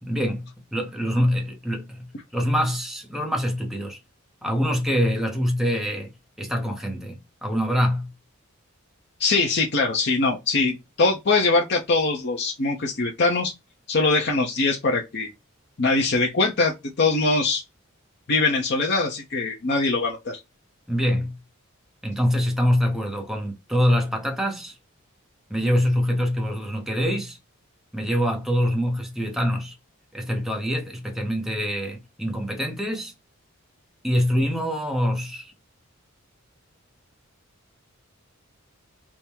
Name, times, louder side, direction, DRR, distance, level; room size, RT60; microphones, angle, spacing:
voice 1, 0.0-4.0 4.4-6.1 6.4-8.1 20.9-21.4 22.0-24.7 25.5-27.4 27.9-29.8 30.1-33.1 34.0-35.5, equal, ahead, 0.6 m, -25 dB
voice 2, 9.2-13.5 13.9-15.3 15.8-17.6 18.3-20.4, left 3 dB, 50° left, 0.6 m, -22 dB
3.5 x 2.0 x 4.3 m
head